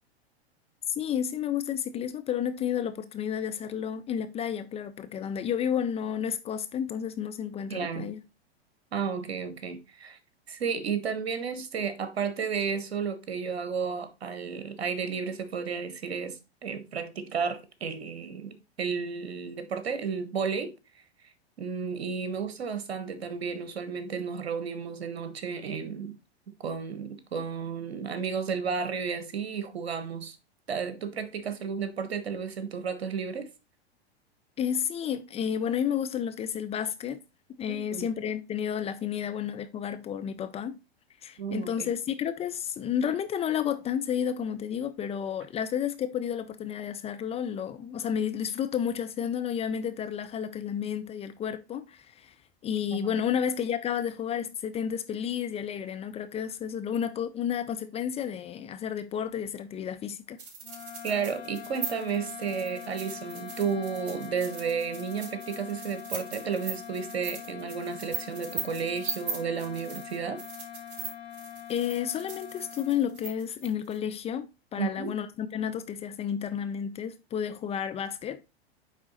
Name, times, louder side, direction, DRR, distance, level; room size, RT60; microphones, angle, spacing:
voice 1, 1.0-8.2 34.6-37.2 37.6-40.8 41.2-52.3 52.6-60.4 71.7-78.4, left 8 dB, 20° left, 0.5 m, -31 dB
voice 2, 7.7-8.1 8.9-10.2 10.5-20.7 21.6-26.1 26.6-30.4 30.7-33.5 37.7-38.1 41.4-41.9 52.9-53.2 61.0-70.4 74.8-75.1, right 6 dB, 70° right, 1.4 m, -32 dB
sound 1, 60.4-74.0, right 5 dB, 55° right, 4.1 m, -39 dB
sound 2, 60.6-73.3, left 10 dB, 45° left, 2.0 m, -43 dB
9.2 x 3.7 x 4.1 m
hypercardioid pair, 100°, 32 cm